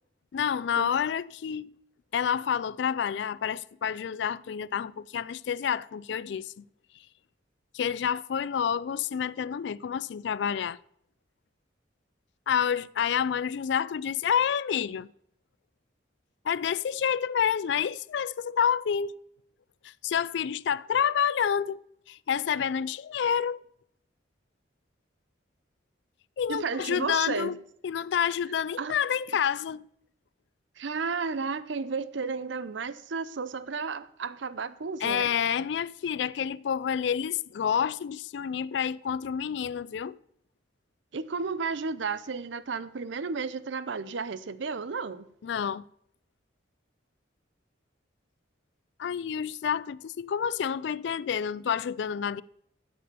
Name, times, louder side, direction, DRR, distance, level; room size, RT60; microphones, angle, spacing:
voice 1, 0.3-1.7 2.1-6.6 7.7-10.8 12.5-15.1 16.4-19.2 19.8-21.8 22.1-23.6 26.4-27.6 27.8-29.9 35.0-40.2 45.4-45.8 49.0-52.4, left 8 dB, 65° left, 0.3 m, -28 dB
voice 2, 26.5-27.5 28.8-28.9 30.8-35.3 41.1-45.3, right 4 dB, 70° right, 0.6 m, -33 dB
8.4 x 7.6 x 6.8 m
head